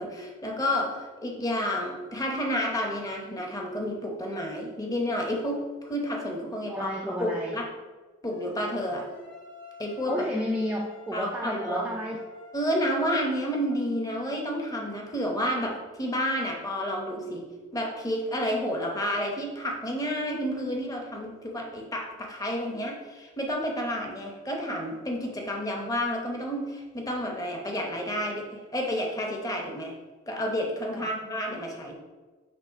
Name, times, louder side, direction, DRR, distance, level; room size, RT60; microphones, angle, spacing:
voice 1, 0.0-7.7 8.2-9.1 9.8-10.3 11.1-11.9 12.5-29.9 30.3-32.0, equal, 15° left, 1 dB, 0.8 m, -30 dB
voice 2, 6.7-7.6 10.1-12.2 30.9-31.1, equal, 5° right, -1 dB, 0.3 m, -32 dB
sound 1, 8.3-14.0, left 2 dB, 60° left, 1.8 m, -48 dB
6.2 x 3.2 x 5.0 m, 1.4 s
head